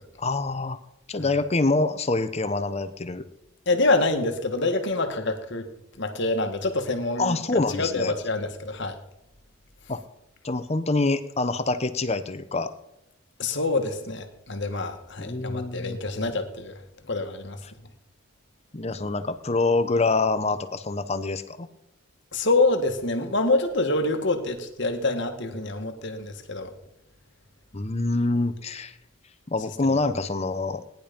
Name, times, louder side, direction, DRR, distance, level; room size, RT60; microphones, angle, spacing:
voice 1, 0.2-0.8 1.1-3.2 7.2-8.1 9.9-10.0 10.4-12.7 15.2-16.0 17.6-17.7 18.7-21.7 27.7-28.9 29.5-30.8, left 3 dB, 30° left, 11 dB, 0.8 m, -26 dB
voice 2, 3.7-5.7 6.0-9.0 13.4-16.7 17.1-17.6 22.3-26.7, left 2 dB, 55° left, 6 dB, 1.6 m, -26 dB
18.0 x 10.5 x 5.2 m, 0.87 s
head